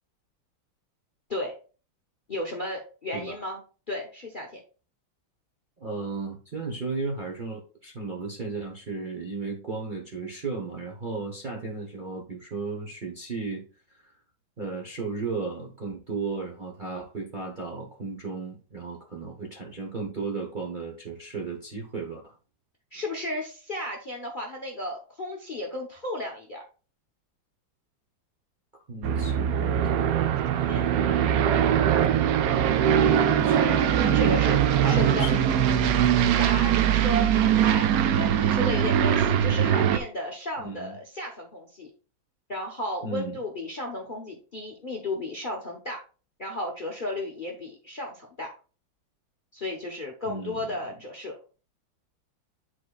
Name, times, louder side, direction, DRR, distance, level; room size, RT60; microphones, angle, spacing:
voice 1, 2.3-3.6 3.9-4.6 22.9-26.6 30.6-31.0 33.5-33.8 34.1-35.4 36.4-37.3 37.6-41.9 42.5-46.0 46.4-48.5 49.5-51.3, left 1 dB, 35° left, 0 dB, 0.8 m, -34 dB
voice 2, 5.8-13.6 13.9-14.1 14.6-22.3 28.9-30.4 30.9-31.5 33.4-33.7 34.0-34.4 34.8-35.4 40.6-40.9 43.0-43.4 50.2-50.7, right 4 dB, 35° right, -1 dB, 0.9 m, -34 dB
Aircraft, 29.0-40.0, right 9 dB, 90° right, 0.8 m, -22 dB
10.5 x 4.1 x 2.3 m, 0.36 s
omnidirectional pair, 2.1 m